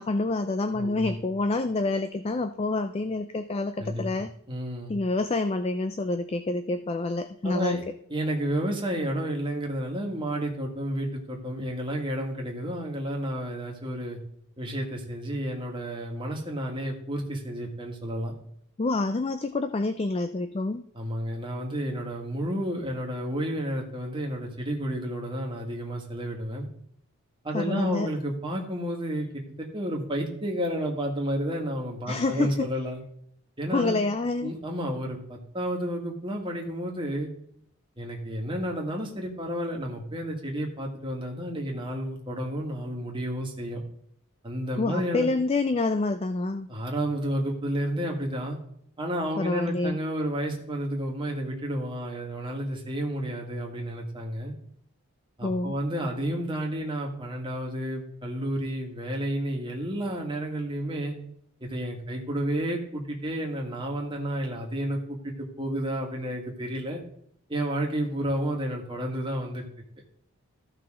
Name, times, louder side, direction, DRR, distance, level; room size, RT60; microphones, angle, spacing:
voice 1, 0.0-4.3 4.9-7.8 18.8-20.8 27.5-28.1 32.1-32.7 33.7-34.5 44.8-46.7 49.4-50.0 55.4-55.7, left 3 dB, 25° left, 10 dB, 0.3 m, -27 dB
voice 2, 0.7-1.2 3.8-4.1 4.5-4.9 7.4-7.8 8.1-14.2 14.6-18.4 20.9-26.7 27.4-33.0 33.6-34.1 34.4-37.3 38.0-43.8 44.4-45.3 46.7-48.6 49.0-54.5 55.4-61.1 61.6-67.0 67.5-69.7, equal, 20° right, 0 dB, 1.8 m, -31 dB
14.5 x 5.8 x 3.7 m, 0.70 s
head